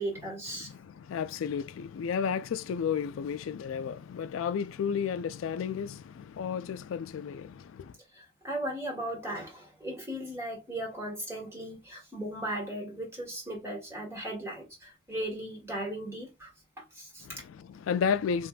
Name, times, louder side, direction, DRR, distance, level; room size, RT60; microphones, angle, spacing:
voice 1, 0.0-0.7 8.1-16.5 16.8-17.4, right 1 dB, 15° right, 1.3 m, -37 dB
voice 2, 0.7-7.9 17.3-18.5, left 7 dB, 85° left, 0.3 m, -32 dB
3.5 x 2.5 x 2.3 m
head